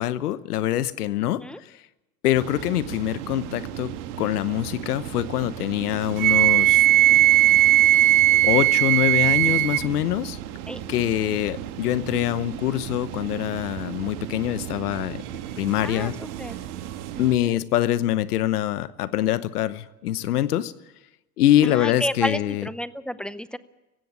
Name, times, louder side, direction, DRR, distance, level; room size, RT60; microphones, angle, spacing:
voice 1, 0.0-1.4 2.2-3.9 4.2-6.8 8.4-10.4 10.9-15.2 15.6-16.1 17.2-20.7 21.4-22.7, left 13 dB, 90° left, 16 dB, 1.0 m, -24 dB
sound 1, 2.3-17.4, right 11 dB, 75° right, 1.7 m, -36 dB
Wind instrument woodwind instrument, 6.2-9.9, right 16 dB, 45° right, 0.8 m, -17 dB
voice 2, 17.1-17.6 21.6-23.6, equal, ahead, 15 dB, 0.6 m, -31 dB
18.0 x 16.0 x 9.5 m, 1.0 s
hypercardioid pair, 100°, 45 cm